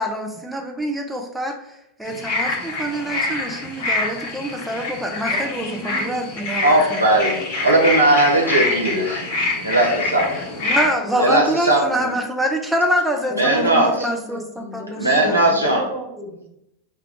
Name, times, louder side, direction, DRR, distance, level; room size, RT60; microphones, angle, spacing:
voice 1, 0.0-7.0 10.6-15.5, equal, 5° right, 2 dB, 0.5 m, -25 dB
sound 1, 2.1-10.9, left 2 dB, 45° left, 0.8 m, -25 dB
voice 2, 5.3-6.2 11.0-11.3 13.3-16.5, right 2 dB, 20° right, -2 dB, 0.9 m, -34 dB
voice 3, 6.6-10.5 11.2-12.1 13.3-14.1 14.9-15.8, right 1 dB, 85° right, -2 dB, 0.7 m, -18 dB
4.5 x 2.3 x 3.6 m, 0.83 s
figure-of-eight pair, 90°, 0 cm